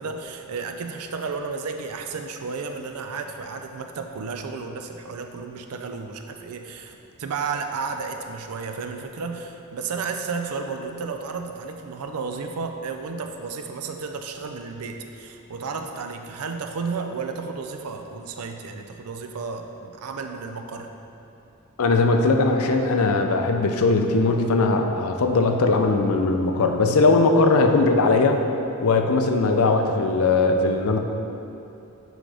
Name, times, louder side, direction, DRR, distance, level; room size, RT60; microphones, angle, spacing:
voice 1, 0.0-20.9, right 4 dB, 80° right, 5 dB, 0.5 m, -32 dB
voice 2, 21.8-28.4 28.8-31.0, left 3 dB, 70° left, 4 dB, 0.5 m, -19 dB
6.1 x 4.9 x 3.4 m, 2.8 s
head